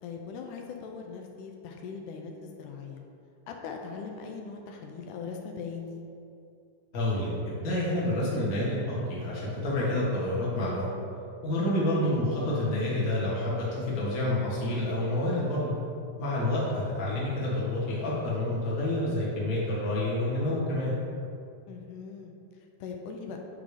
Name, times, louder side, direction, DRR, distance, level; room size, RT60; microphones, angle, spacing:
voice 1, 0.0-3.0 3.5-6.0 16.7-16.8 21.7-22.3 22.8-23.4, left 5 dB, 85° left, 2 dB, 2.2 m, -40 dB
voice 2, 6.9-7.3 7.6-10.9 11.4-15.7 16.2-20.9, left 1 dB, 35° left, -7 dB, 1.5 m, -28 dB
8.4 x 3.8 x 4.9 m, 2.5 s
omnidirectional pair, 3.6 m